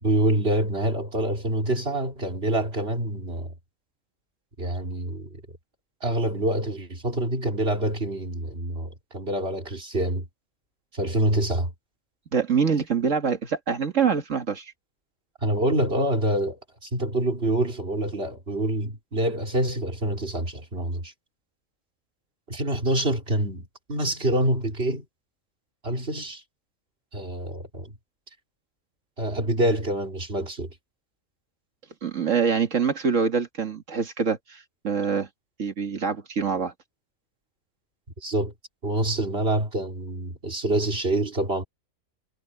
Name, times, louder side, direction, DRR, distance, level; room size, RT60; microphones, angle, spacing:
voice 1, 0.0-3.5 4.6-5.4 6.0-10.3 10.9-11.7 15.4-21.1 22.5-25.1 25.8-26.4 27.1-27.9 29.2-30.7 38.2-38.5 38.8-41.6, right 1 dB, 50° right, 3.7 m, -26 dB
voice 2, 12.3-14.7 32.0-35.3 35.6-36.7, right 6 dB, 70° right, 2.1 m, -25 dB
omnidirectional pair, 1.4 m